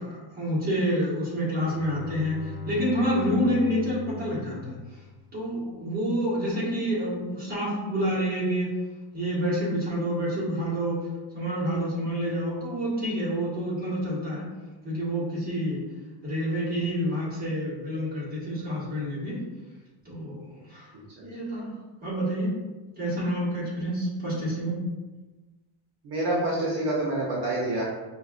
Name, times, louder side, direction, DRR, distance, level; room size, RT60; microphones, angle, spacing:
voice 1, 0.0-4.8 5.3-8.7 9.1-11.1 11.3-14.5 14.8-15.8 16.2-19.4 20.0-20.9 21.2-21.7 22.0-22.6 23.0-24.8, equal, 20° right, -9 dB, 1.4 m, -28 dB
Bowed string instrument, 1.5-5.5, left 7 dB, 45° left, 0.4 m, -41 dB
voice 2, 26.0-27.9, right 1 dB, 55° right, -5 dB, 0.9 m, -27 dB
5.5 x 2.3 x 2.4 m, 1.2 s
cardioid pair, 175°, 48 cm